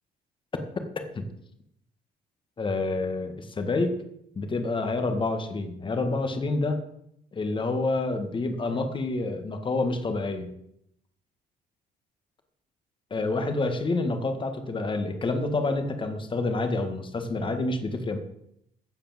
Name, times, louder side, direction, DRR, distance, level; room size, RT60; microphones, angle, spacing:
voice 1, 2.6-4.0 4.4-6.8 7.3-10.5 13.1-18.2, left 2 dB, 30° left, 6 dB, 1.9 m, -28 dB
15.0 x 5.0 x 8.0 m, 0.75 s
cardioid pair, 110°, 17 cm